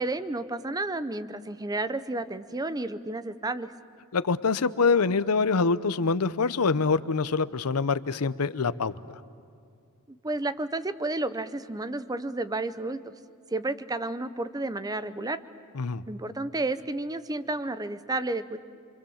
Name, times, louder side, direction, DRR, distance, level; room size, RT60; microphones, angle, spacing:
voice 1, 0.0-3.7 10.1-13.0 13.5-15.4 16.1-18.6, right 2 dB, 15° right, 12 dB, 0.7 m, -31 dB
voice 2, 4.1-8.9 15.7-16.0, left 4 dB, 80° left, 15 dB, 0.7 m, -25 dB
28.5 x 24.5 x 7.2 m, 2.4 s
head